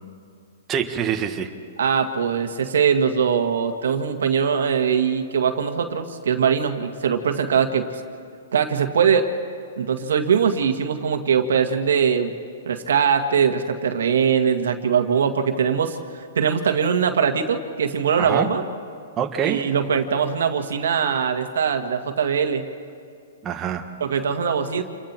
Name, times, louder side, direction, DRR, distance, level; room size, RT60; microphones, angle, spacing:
voice 1, 0.7-1.5 18.2-18.5 19.2-19.6 21.0-21.1 23.4-23.9, right 8 dB, 20° right, 3 dB, 1.5 m, -25 dB
voice 2, 1.8-7.9 8.5-9.3 9.8-12.3 12.7-16.0 16.4-18.6 19.4-22.6 24.0-24.8, right 7 dB, 80° right, 6 dB, 1.8 m, -21 dB
28.5 x 22.5 x 4.5 m, 2.4 s
hypercardioid pair, 140°, 0 cm